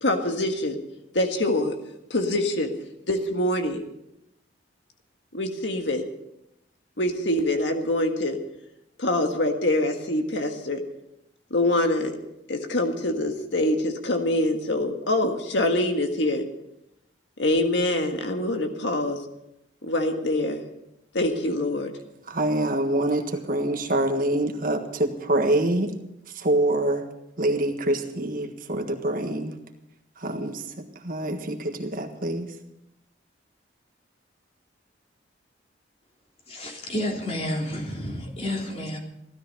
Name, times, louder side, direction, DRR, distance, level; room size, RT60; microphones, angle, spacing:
voice 1, 0.0-0.8 1.1-1.7 2.1-2.7 3.1-3.8 5.3-6.0 7.0-8.4 9.0-10.8 11.5-12.1 12.5-16.4 17.4-19.2 19.8-20.6 21.1-21.9, left 1 dB, 70° left, 5 dB, 1.7 m, -24 dB
voice 2, 22.3-25.9 26.3-27.1 27.4-29.6 30.2-32.6, right 1 dB, 50° right, 5 dB, 1.6 m, -25 dB
voice 3, 36.5-39.0, left 1 dB, 35° left, 0 dB, 3.4 m, -30 dB
16.0 x 13.0 x 5.5 m, 0.85 s
head